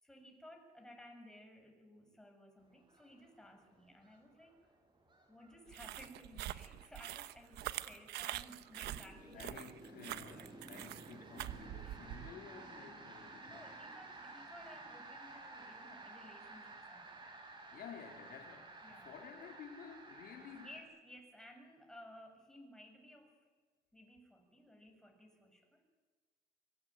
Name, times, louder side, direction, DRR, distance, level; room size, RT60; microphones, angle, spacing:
voice 1, 0.0-4.6 5.3-9.5 10.3-10.5 11.8-12.0 13.4-17.2 18.8-19.1 20.5-23.4 23.9-26.0, left 1 dB, 5° left, 7.3 m, -57 dB
sound 1, 2.8-20.8, right 3 dB, 25° right, 7.3 m, -54 dB
sound 2, 5.7-12.3, right 14 dB, 80° right, 1.1 m, -45 dB
voice 2, 9.1-13.8 17.7-20.7, left 7 dB, 65° left, 3.7 m, -53 dB
24.5 x 23.0 x 9.1 m
cardioid pair, 110°, 17 cm